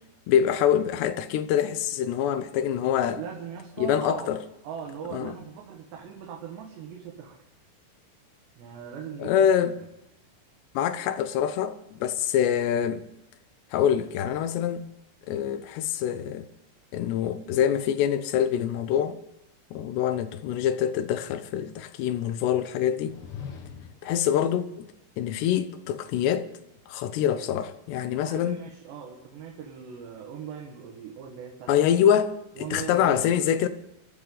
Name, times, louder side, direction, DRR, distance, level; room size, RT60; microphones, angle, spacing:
voice 1, 0.3-3.2 3.8-4.4 5.1-5.3 9.2-9.8 10.7-13.0 13.7-14.9 15.3-16.5 16.9-19.2 19.7-23.2 24.0-24.9 25.2-26.5 26.9-28.6 31.7-33.7, left 9 dB, 85° left, 3.1 m, -25 dB
voice 2, 3.2-4.4 4.6-7.4 8.6-9.5 28.2-31.7 32.6-33.4, right 7 dB, 85° right, 4.0 m, -39 dB
sound 1, 23.0-24.2, left 7 dB, 70° left, 1.3 m, -41 dB
23.5 x 13.5 x 4.0 m
omnidirectional pair, 4.8 m